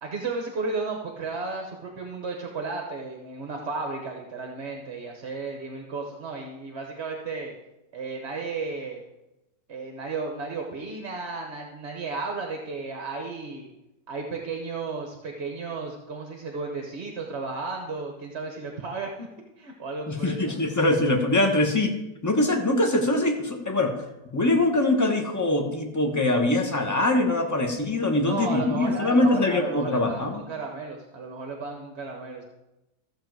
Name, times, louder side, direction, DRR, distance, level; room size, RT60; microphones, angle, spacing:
voice 1, 0.0-7.5 7.9-9.1 9.7-13.7 14.1-19.3 19.6-20.6 28.2-32.4, right 4 dB, 45° right, 2 dB, 1.1 m, -34 dB
voice 2, 20.1-22.0 22.2-23.9 24.3-30.4, left 2 dB, 15° left, 3 dB, 0.9 m, -23 dB
14.5 x 7.1 x 4.7 m, 0.97 s
omnidirectional pair, 1.9 m